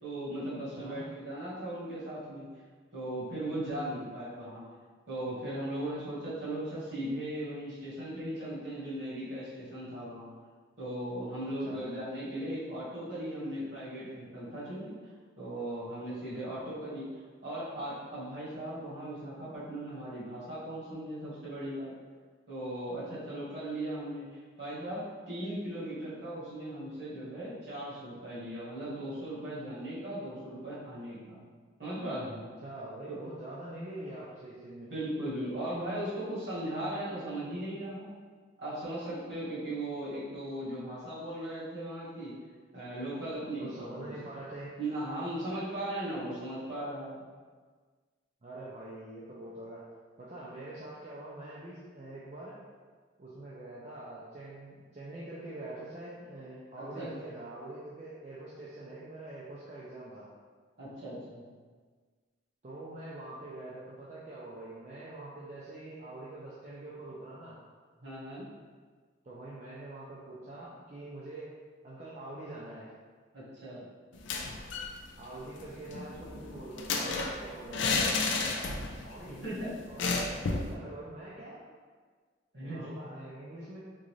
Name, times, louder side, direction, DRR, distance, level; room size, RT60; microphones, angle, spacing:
voice 1, 0.0-2.5 2.9-4.6 5.1-10.3 10.8-15.1 15.4-17.1 17.4-21.9 22.5-24.3 24.6-31.4 31.8-32.5 33.1-33.2 34.9-38.2 38.6-42.3 42.7-44.1 44.8-47.2 56.9-57.3 60.8-61.5 68.0-68.4 73.3-73.8 79.3-79.7 82.5-82.9, right 1 dB, 60° right, -9 dB, 1.4 m, -38 dB
voice 2, 32.6-34.9 43.6-44.7 48.4-49.8 50.2-52.6 53.2-60.3 62.6-67.6 69.2-71.5 71.8-72.9 75.2-78.8 79.0-79.5 79.9-81.6 82.6-83.8, right 2 dB, 35° right, -7 dB, 0.4 m, -44 dB
sound 1, 74.1-74.9 75.2-75.3 75.6-79.1 79.3-79.5 80.0-80.7, left 3 dB, 70° left, 0.4 m, -32 dB
3.7 x 2.5 x 3.1 m, 1.5 s
head